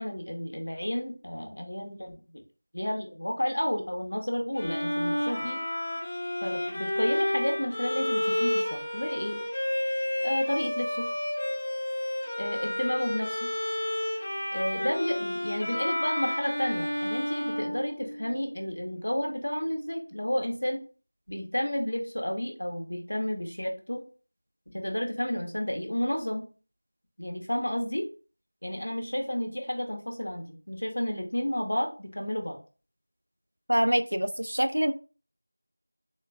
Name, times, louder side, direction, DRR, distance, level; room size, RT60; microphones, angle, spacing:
voice 1, 0.0-2.2 2.7-5.6 6.4-9.4 10.2-11.1 12.4-13.5 14.5-20.8 21.3-24.1 24.7-26.5 27.2-28.1 28.6-32.6, equal, 85° left, 2 dB, 0.9 m, -31 dB
Bowed string instrument, 4.6-18.5, left 1 dB, 15° left, 0.6 m, -31 dB
voice 2, 33.7-34.9, equal, 90° right, 10 dB, 0.4 m, -25 dB
3.7 x 2.1 x 2.5 m, 0.36 s
figure-of-eight pair, 180°, 0 cm